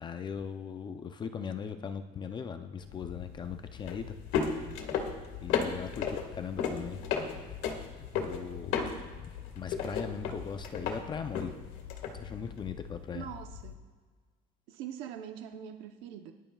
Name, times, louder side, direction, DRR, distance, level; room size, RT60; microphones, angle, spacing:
voice 1, 0.0-4.9 5.4-7.5 8.0-9.0 9.6-11.5 12.1-13.3, left 6 dB, 25° left, 8 dB, 0.5 m, -39 dB
sound 1, 2.8-13.7, left 6 dB, 80° left, 1.8 m, -36 dB
voice 2, 13.1-13.7 14.7-16.3, right 9 dB, 90° right, 5 dB, 0.9 m, -42 dB
21.5 x 11.0 x 2.4 m, 1.4 s
cardioid pair, 165°, 19 cm